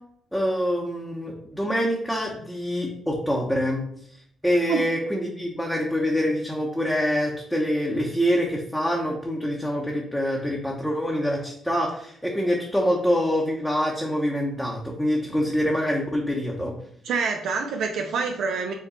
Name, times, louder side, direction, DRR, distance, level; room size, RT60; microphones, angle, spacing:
voice 1, 0.3-3.8 4.4-16.7, equal, ahead, -2 dB, 0.7 m, -25 dB
voice 2, 17.0-18.7, right 5 dB, 75° right, 4 dB, 0.4 m, -26 dB
4.6 x 2.2 x 4.0 m, 0.67 s
cardioid pair, 90°, 0 cm